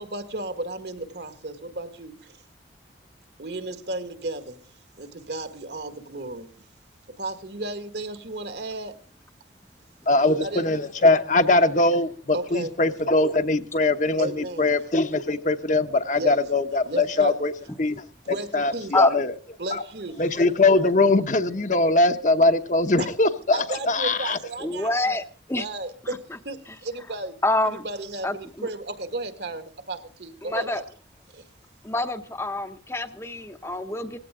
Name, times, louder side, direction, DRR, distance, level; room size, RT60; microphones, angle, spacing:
voice 1, 0.0-2.4 3.4-4.6 5.0-6.5 7.1-9.0 10.2-10.8 12.3-12.7 14.2-14.7 16.1-16.3 16.8-17.4 18.2-18.9 19.6-20.2 23.0-23.1 23.5-24.9 25.5-30.8 31.3-31.4, right 2 dB, 65° right, 1.9 m, -34 dB
voice 2, 10.1-17.5 17.8-19.3 19.7-19.8 20.2-24.4, left 2 dB, 40° left, 0.9 m, -21 dB
voice 3, 24.6-25.6 27.4-27.8 28.2-28.7 30.4-30.8 31.8-34.2, left 2 dB, 15° left, 0.8 m, -26 dB
18.5 x 16.0 x 3.7 m
head